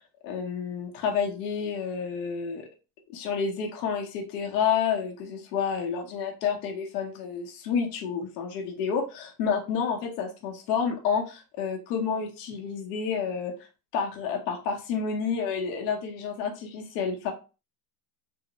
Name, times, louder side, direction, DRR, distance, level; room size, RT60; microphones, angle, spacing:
voice 1, 0.0-2.7 3.1-13.5 13.9-17.3, left 6 dB, 85° left, 2 dB, 1.0 m, -29 dB
3.6 x 2.1 x 2.9 m, 0.32 s
supercardioid pair, 145°, 47 cm